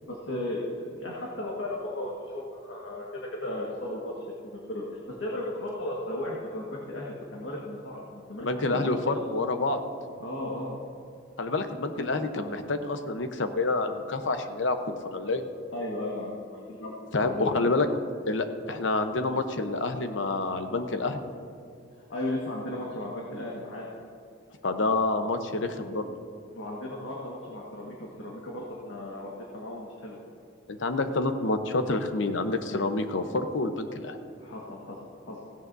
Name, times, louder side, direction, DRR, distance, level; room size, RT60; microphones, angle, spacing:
voice 1, 0.0-4.1 4.5-9.0 10.2-10.8 15.7-17.0 17.2-17.7 22.0-23.9 26.5-30.2 34.4-35.0 35.3-35.4, left 1 dB, 90° left, -4 dB, 1.6 m, -35 dB
voice 2, 8.4-9.8 11.4-15.4 17.1-17.9 18.3-21.2 24.6-26.0 30.7-34.2, left 3 dB, 75° left, 7 dB, 0.9 m, -28 dB
16.0 x 16.0 x 2.7 m, 2.4 s
head